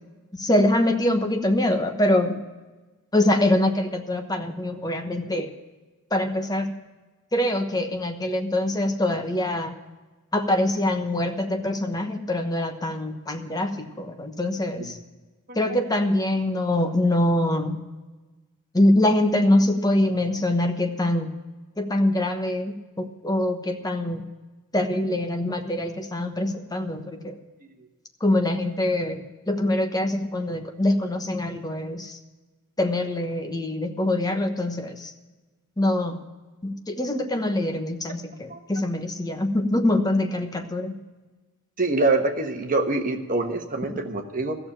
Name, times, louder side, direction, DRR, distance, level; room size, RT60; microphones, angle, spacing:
voice 1, 0.3-2.4 3.1-5.5 6.1-6.7 7.3-9.7 10.3-15.0 15.5-17.8 18.7-21.3 21.8-24.3 24.7-27.4 28.2-32.2 32.8-35.1 35.8-36.2 36.6-41.0, left 1 dB, 15° left, 5 dB, 1.1 m, -24 dB
voice 2, 41.8-44.6, right 2 dB, 40° right, 4 dB, 1.3 m, -25 dB
14.0 x 6.9 x 8.8 m, 1.2 s
head